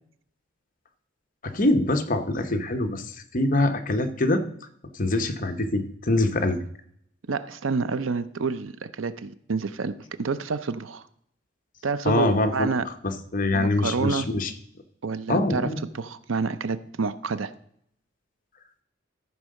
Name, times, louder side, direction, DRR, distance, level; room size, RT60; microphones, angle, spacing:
voice 1, 1.4-4.4 5.0-6.6 12.0-12.7 13.0-14.5 15.3-15.8, left 2 dB, 45° left, 7 dB, 0.9 m, -24 dB
voice 2, 7.3-9.9 10.2-11.0 11.8-12.9 13.5-14.3 15.0-17.5, right 4 dB, 85° right, 14 dB, 0.6 m, -28 dB
14.0 x 4.7 x 6.4 m, 0.69 s
head